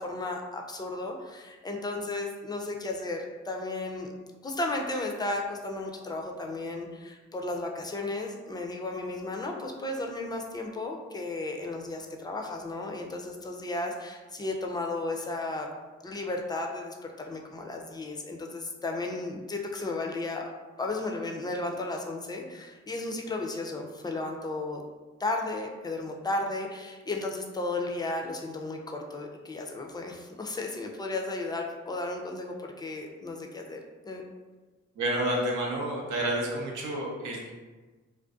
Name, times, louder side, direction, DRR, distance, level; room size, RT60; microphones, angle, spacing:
voice 1, 0.0-4.1 4.4-15.7 16.0-20.4 20.8-24.8 25.2-34.2, left 2 dB, 15° left, 2 dB, 0.4 m, -34 dB
voice 2, 35.0-37.5, right 1 dB, 85° right, -2 dB, 0.6 m, -30 dB
2.4 x 2.2 x 2.4 m, 1.3 s
supercardioid pair, 45°, 29 cm